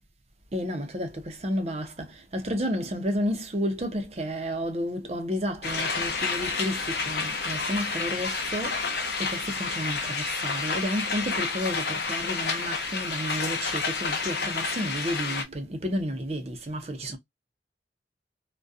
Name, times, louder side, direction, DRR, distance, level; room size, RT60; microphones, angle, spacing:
voice 1, 0.5-8.9 9.2-17.2, equal, 35° right, 0.5 m, -31 dB
sound 1, 5.6-15.4, left 4 dB, 65° left, 0.6 m, -30 dB
2.3 x 2.2 x 2.5 m
head